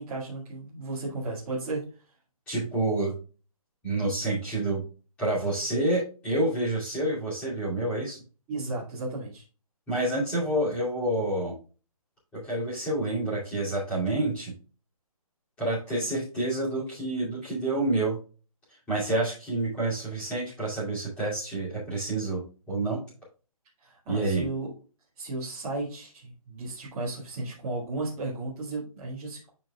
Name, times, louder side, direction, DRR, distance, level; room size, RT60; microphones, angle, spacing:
voice 1, 0.0-1.8 8.5-9.4 23.8-24.7 25.2-29.5, right 2 dB, 10° right, -9 dB, 1.9 m, -34 dB
voice 2, 2.5-3.1 3.8-4.8 5.2-8.2 9.9-11.5 12.3-14.5 15.6-18.2 18.9-23.0 24.1-24.4, right 2 dB, 5° left, -9 dB, 2.5 m, -28 dB
10.5 x 5.3 x 2.3 m, 0.36 s
hypercardioid pair, 180°, 19 cm